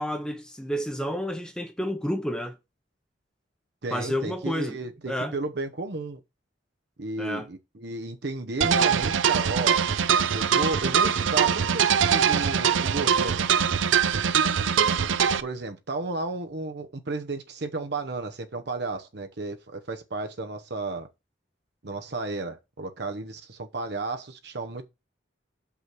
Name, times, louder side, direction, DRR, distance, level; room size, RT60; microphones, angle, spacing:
voice 1, 0.0-2.5 3.9-4.8 5.1-5.3 7.2-7.5, equal, 5° left, 0.8 m, -30 dB
voice 2, 3.8-6.2 7.0-9.8 10.3-13.5 15.4-21.1 21.8-24.9, right 3 dB, 60° right, 0.8 m, -33 dB
sound 1, 8.6-15.4, right 7 dB, 85° right, 0.6 m, -22 dB
6.2 x 5.7 x 6.0 m
head